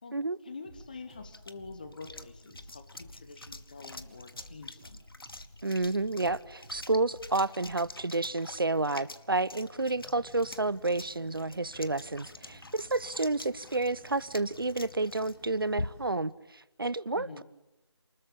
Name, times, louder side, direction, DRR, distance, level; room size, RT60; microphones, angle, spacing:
voice 1, 0.0-5.0 17.1-17.4, left 4 dB, 20° left, 1.2 m, -47 dB
sound 1, 0.6-7.9, equal, 10° right, 3.8 m, -53 dB
sound 2, 0.7-16.3, left 2 dB, 55° left, 1.4 m, -46 dB
voice 2, 5.6-17.4, right 2 dB, 55° right, 0.9 m, -30 dB
sound 3, 9.5-16.1, equal, 5° left, 2.7 m, -57 dB
29.0 x 20.5 x 8.7 m
figure-of-eight pair, 165°, 15 cm